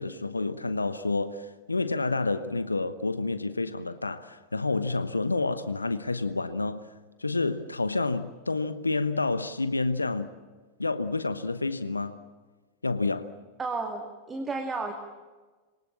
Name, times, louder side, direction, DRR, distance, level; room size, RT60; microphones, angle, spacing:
voice 1, 0.0-6.8 7.2-10.3 10.8-12.2 12.8-13.3, left 3 dB, 80° left, 1.0 m, -29 dB
voice 2, 13.6-14.9, right 3 dB, 15° right, 2.1 m, -32 dB
27.0 x 23.0 x 7.4 m
figure-of-eight pair, 90°, 0 cm